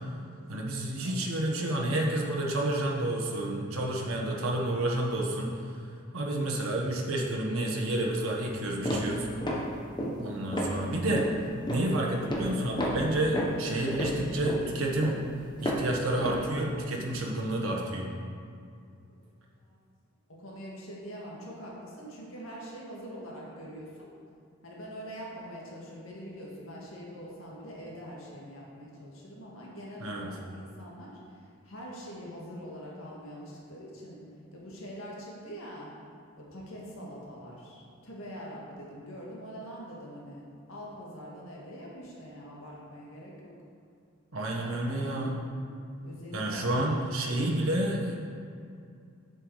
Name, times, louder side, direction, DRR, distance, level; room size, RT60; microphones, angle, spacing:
voice 1, 0.5-5.5 6.1-9.3 10.2-11.2 11.7-15.2 15.6-18.1 30.0-30.3 44.3-45.4 46.3-48.2, right 1 dB, 80° right, -1 dB, 1.2 m, -30 dB
voice 2, 1.0-1.6 19.1-19.2 19.6-19.8 20.3-24.1 24.6-34.2 34.5-35.9 36.4-43.5 44.4-45.3 46.0-46.9, equal, 75° left, -4 dB, 1.8 m, -44 dB
sound 1, 8.4-8.5 8.9-9.7 10.0-10.2 10.5-10.8 11.1-11.4 11.7-11.9 12.2-12.5 12.8-15.9 16.2-16.4, equal, 20° left, 1.0 m, -32 dB
7.8 x 7.0 x 4.8 m, 2.4 s
head